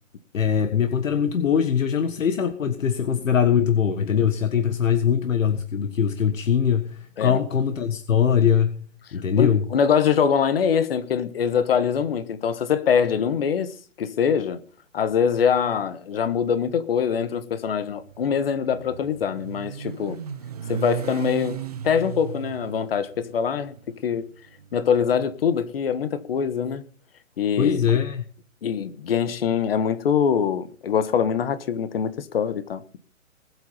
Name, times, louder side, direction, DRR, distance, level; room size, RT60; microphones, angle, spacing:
voice 1, 0.3-9.7 27.6-28.2, left 8 dB, 65° left, 1.7 m, -22 dB
voice 2, 9.4-14.6 14.9-20.2 20.7-24.3 24.7-26.8 27.4-27.8 28.6-33.0, left 7 dB, 45° left, 1.4 m, -23 dB
Motorcycle, 17.6-25.8, right 8 dB, 30° right, 0.7 m, -36 dB
20.0 x 8.3 x 5.7 m
hypercardioid pair, 165°, 41 cm